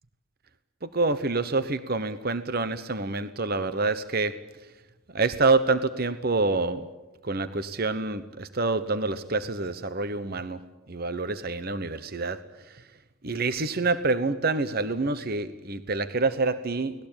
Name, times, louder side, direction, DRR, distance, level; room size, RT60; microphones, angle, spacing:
voice 1, 0.8-4.3 5.1-6.9 7.2-10.6 10.9-12.4 12.7-12.8 13.2-16.9, right 3 dB, 45° right, 12 dB, 1.0 m, -27 dB
30.0 x 19.5 x 8.9 m, 1.1 s
head